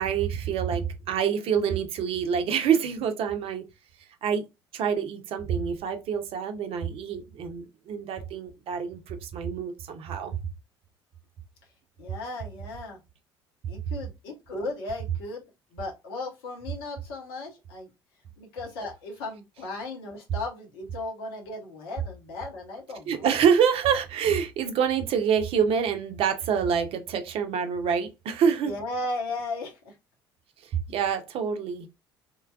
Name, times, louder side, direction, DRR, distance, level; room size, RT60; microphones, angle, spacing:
voice 1, 0.0-3.6 4.2-4.5 4.7-10.4 23.1-28.7 30.9-31.9, right 7 dB, 50° right, 0.6 m, -26 dB
voice 2, 12.0-13.0 13.7-15.4 15.7-17.9 18.4-23.3 28.6-30.0, left 2 dB, 65° left, 1.0 m, -36 dB
3.1 x 2.2 x 2.3 m
figure-of-eight pair, 60°, 13 cm